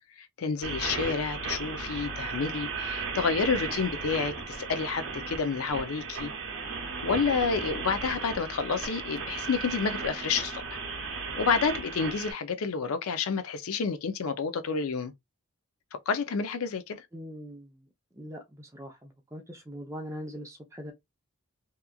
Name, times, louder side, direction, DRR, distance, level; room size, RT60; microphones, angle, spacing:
voice 1, 0.2-6.3 7.0-10.8 11.4-15.1 16.1-17.1, left 5 dB, 85° left, 0.5 m, -29 dB
sound 1, 0.6-12.3, right 4 dB, 70° right, 0.8 m, -35 dB
voice 2, 17.1-17.9 18.1-20.9, equal, 15° right, 0.6 m, -42 dB
2.9 x 2.4 x 2.3 m
head